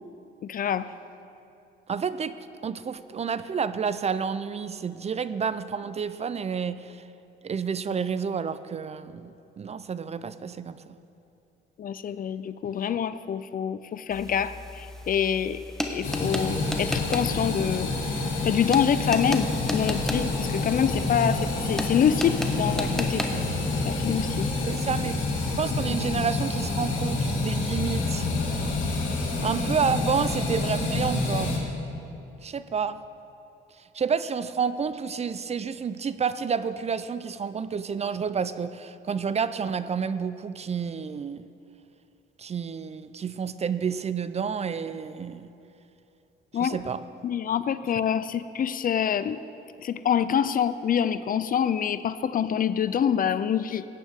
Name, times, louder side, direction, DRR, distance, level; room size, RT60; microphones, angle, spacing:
voice 1, 0.4-0.9 11.8-15.6 15.9-17.9 18.4-23.3 23.8-24.5 46.5-46.8 47.2-49.4 49.8-53.9, left 8 dB, 45° left, 14 dB, 0.4 m, -26 dB
voice 2, 1.9-7.0 7.4-10.9 24.7-25.2 25.6-28.3 29.4-31.5 32.4-33.0 33.9-41.4 42.4-45.5 46.6-47.0, right 6 dB, 35° right, 14 dB, 0.4 m, -30 dB
sound 1, 14.1-25.6, left 1 dB, ahead, 1.1 m, -36 dB
sound 2, 16.0-31.6, left 3 dB, 75° left, 2.5 m, -28 dB
17.5 x 9.1 x 3.6 m, 2.7 s
cardioid pair, 90°, 20 cm